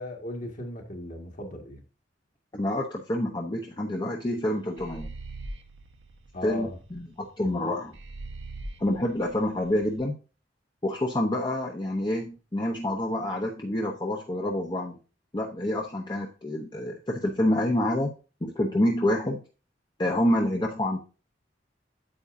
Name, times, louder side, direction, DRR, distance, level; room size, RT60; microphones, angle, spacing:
voice 1, 0.0-1.8 6.3-6.8 7.4-7.8, left 1 dB, 45° left, 2 dB, 1.8 m, -37 dB
voice 2, 2.5-5.1 6.4-7.9 8.8-10.2 10.8-15.0 15.3-18.1 18.4-19.4 20.0-21.0, left 1 dB, 25° left, 0 dB, 0.8 m, -27 dB
sound 1, 4.8-6.9 7.9-10.0, right 2 dB, 75° right, 1.2 m, -41 dB
8.8 x 8.1 x 2.6 m, 0.33 s
head